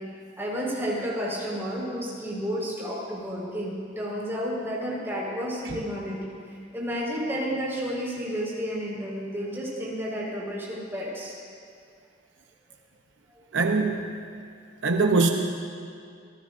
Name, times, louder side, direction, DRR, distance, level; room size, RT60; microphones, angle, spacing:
voice 1, 0.4-6.2 6.7-11.3 13.3-13.4, equal, 15° right, -6 dB, 5.1 m, -31 dB
voice 2, 13.5-14.0 14.8-15.3, right 3 dB, 70° right, 3 dB, 0.9 m, -21 dB
27.5 x 19.0 x 2.7 m, 2.3 s
head